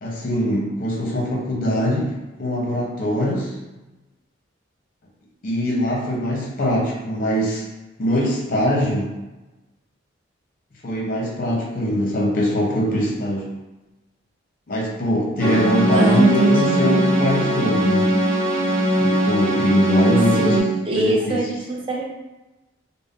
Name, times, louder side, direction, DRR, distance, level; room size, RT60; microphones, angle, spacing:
voice 1, 0.0-2.1 2.4-3.6 5.4-7.6 8.0-9.1 10.8-13.5 14.7-18.1 19.0-20.6 20.9-21.4, equal, 45° left, -2 dB, 0.6 m, -22 dB
sound 1, 15.4-20.6, equal, 75° right, 0.8 m, -20 dB
voice 2, 15.9-16.8 20.4-22.1, right 2 dB, 25° right, -2 dB, 0.4 m, -21 dB
2.5 x 2.0 x 3.5 m, 1.1 s
head